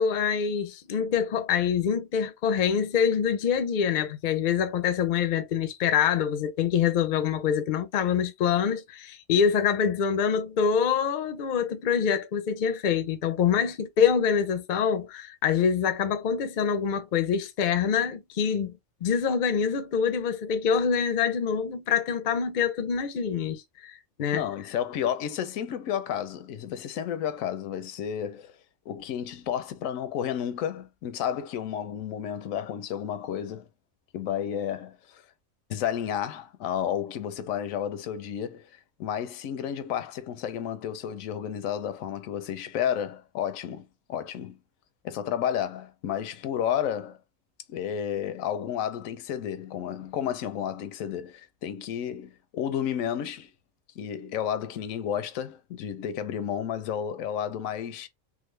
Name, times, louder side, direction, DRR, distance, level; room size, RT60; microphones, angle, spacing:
voice 1, 0.0-18.7 19.0-24.5, left 7 dB, 55° left, 0.5 m, -25 dB
voice 2, 24.3-28.5 28.9-33.7 34.1-35.2 35.7-44.6 45.0-47.2 47.7-53.5 54.0-58.1, left 9 dB, 85° left, 1.0 m, -31 dB
3.6 x 2.0 x 3.1 m
omnidirectional pair, 1.4 m